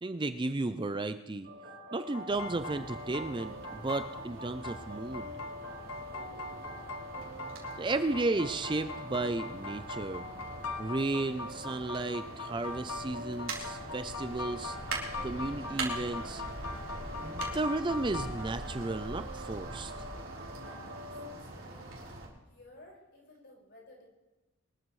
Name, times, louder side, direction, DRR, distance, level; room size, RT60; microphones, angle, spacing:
voice 1, 0.0-1.5 1.9-5.3 7.8-10.3 10.8-14.8 15.2-16.4 17.2-19.9, right 2 dB, 20° right, 10 dB, 0.4 m, -34 dB
sound 1, 1.4-21.3, equal, 45° right, 3.4 m, -46 dB
sound 2, 2.0-18.5, left 3 dB, 75° left, 0.9 m, -42 dB
sound 3, 2.3-22.3, right 2 dB, 60° right, 4.0 m, -43 dB
voice 2, 6.0-6.5 20.6-22.0 22.5-24.1, left 1 dB, 50° left, -2 dB, 5.3 m, -56 dB
24.0 x 13.5 x 3.2 m, 1.1 s
head